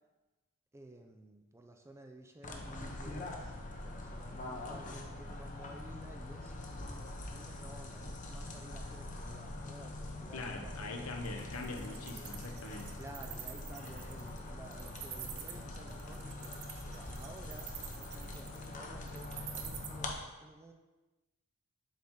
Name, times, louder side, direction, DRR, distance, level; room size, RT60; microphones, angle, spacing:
voice 1, 0.7-3.3 3.8-11.2 13.0-20.7, right 2 dB, 10° right, 4 dB, 0.4 m, -54 dB
sound 1, 2.4-20.1, left 2 dB, 35° left, 0.7 m, -44 dB
voice 2, 10.3-12.9, left 3 dB, 80° left, 4 dB, 0.8 m, -42 dB
Wild animals, 11.2-19.9, right 10 dB, 50° right, 0.6 m, -47 dB
7.4 x 4.0 x 3.7 m, 1.1 s
head